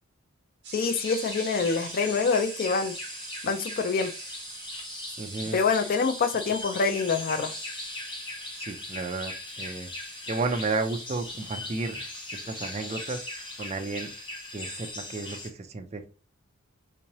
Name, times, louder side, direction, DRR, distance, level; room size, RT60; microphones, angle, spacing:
sound 1, 0.6-14.2, right 5 dB, 50° right, 1.0 m, -47 dB
voice 1, 0.7-2.9 3.4-4.1 5.5-7.5, left 5 dB, 40° left, 0.3 m, -26 dB
sound 2, 0.8-15.5, left 2 dB, 20° left, 0.7 m, -39 dB
voice 2, 5.2-5.6 8.5-9.9 10.3-12.1 12.4-14.1 14.5-16.1, right 3 dB, 30° right, 0.4 m, -33 dB
3.5 x 2.9 x 2.9 m
head